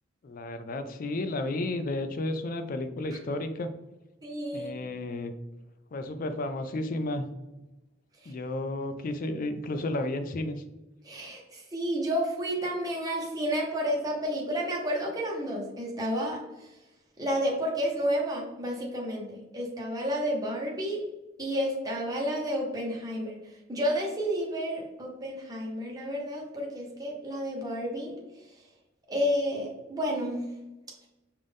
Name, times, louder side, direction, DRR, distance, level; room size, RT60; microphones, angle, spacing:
voice 1, 0.2-3.7 4.5-5.3 5.9-7.3 8.3-10.6, left 2 dB, 45° left, 9 dB, 0.4 m, -32 dB
voice 2, 4.2-4.7 8.2-8.3 11.0-16.4 17.2-21.0 21.4-23.4 23.7-28.2 29.1-30.5, equal, 20° right, -2 dB, 0.9 m, -31 dB
5.2 x 2.5 x 3.5 m, 1.0 s
head